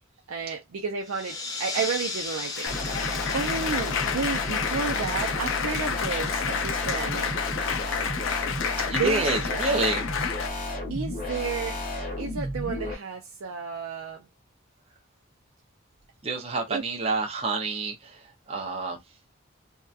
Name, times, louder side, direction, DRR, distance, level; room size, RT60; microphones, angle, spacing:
voice 1, 0.3-3.0 3.3-7.3 8.9-9.8 10.9-11.8 12.2-14.3 16.7-16.8, right 5 dB, 85° right, 0.5 m, -32 dB
sound 1, 1.0-6.2, left 3 dB, 20° left, 0.5 m, -37 dB
Applause, 2.0-10.5, left 7 dB, 75° left, 0.4 m, -30 dB
sound 2, 2.7-12.9, left 1 dB, 40° left, 0.9 m, -33 dB
voice 2, 8.9-10.1 16.2-19.0, right 3 dB, 30° right, 0.6 m, -28 dB
2.8 x 2.2 x 2.4 m
head